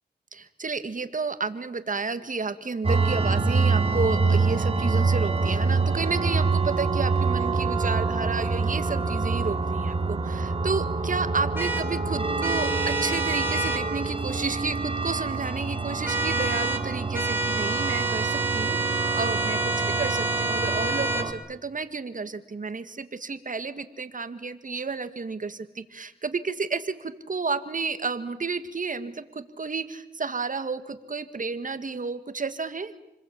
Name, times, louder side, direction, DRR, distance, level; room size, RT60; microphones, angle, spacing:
voice 1, 0.3-32.9, right 4 dB, 50° right, 11 dB, 1.9 m, -31 dB
sound 1, 2.8-21.3, right 4 dB, 30° right, 5.1 m, -26 dB
sound 2, 11.6-11.8 12.4-13.8 16.0-16.8 17.1-21.3, right 2 dB, 10° right, 5.3 m, -28 dB
29.0 x 21.0 x 8.7 m, 0.89 s
cardioid pair, 55°, 18 cm